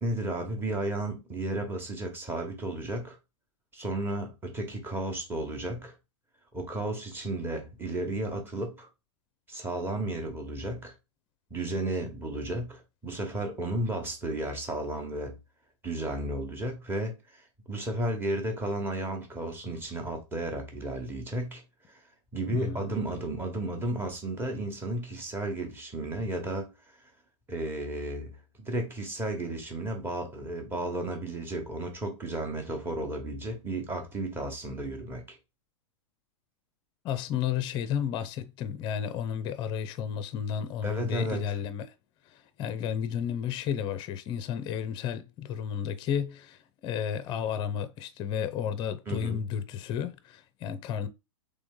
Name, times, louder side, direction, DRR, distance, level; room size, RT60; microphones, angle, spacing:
voice 1, 0.0-3.2 3.7-5.9 6.5-8.9 9.5-10.9 11.5-15.4 15.8-17.4 17.7-21.6 21.9-22.0 22.3-26.7 27.5-35.4 40.8-41.6 49.1-49.4, right 1 dB, 15° right, 1.2 m, -33 dB
voice 2, 22.5-22.9 37.0-41.8 42.6-51.1, left 8 dB, 30° left, 0.5 m, -32 dB
3.8 x 3.3 x 3.6 m
hypercardioid pair, 120°, 16 cm